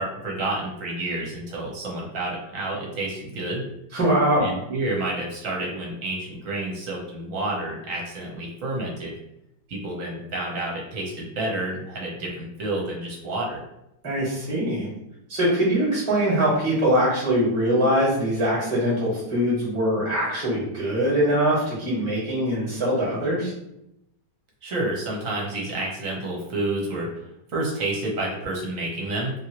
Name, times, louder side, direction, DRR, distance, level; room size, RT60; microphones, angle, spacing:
voice 1, 0.0-3.6 4.4-9.2 9.7-13.6 24.6-29.3, right 2 dB, 55° right, -2 dB, 1.1 m, -29 dB
voice 2, 3.9-4.5 14.0-14.9 15.3-23.5, equal, 20° right, -5 dB, 1.1 m, -22 dB
2.9 x 2.7 x 2.9 m, 0.83 s
omnidirectional pair, 1.9 m